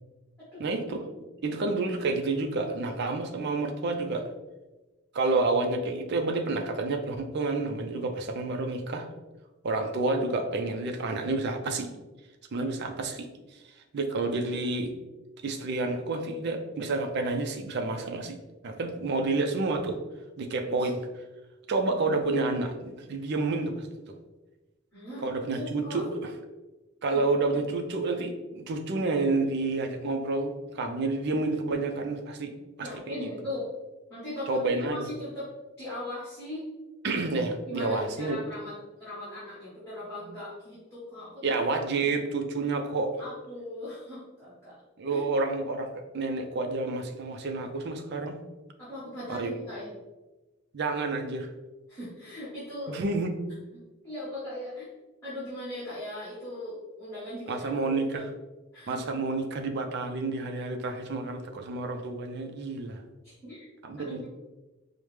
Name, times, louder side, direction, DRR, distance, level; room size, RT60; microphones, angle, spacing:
voice 1, 0.6-1.0 1.4-4.3 5.1-9.1 9.6-11.9 12.5-13.3 13.9-14.9 15.4-18.4 18.6-20.0 20.4-21.0 21.7-24.1 25.2-26.3 27.0-32.5 32.8-32.9 33.2-33.3 34.5-35.1 37.0-38.4 41.4-43.2 45.0-48.4 49.3-49.7 50.7-51.5 52.9-53.3 57.5-58.3 58.9-63.0 63.8-64.3, right 3 dB, 50° right, 4 dB, 0.4 m, -29 dB
voice 2, 24.9-26.0 27.1-27.2 32.8-33.6 34.1-35.5 35.8-36.6 37.7-41.6 43.2-44.7 45.1-45.2 48.8-49.9 51.9-53.0 54.0-54.9 55.2-57.8 58.1-58.2 58.7-59.0 63.2-63.7 64.0-64.3, left 1 dB, 10° left, -10 dB, 1.1 m, -39 dB
4.7 x 2.1 x 3.2 m, 1.1 s
head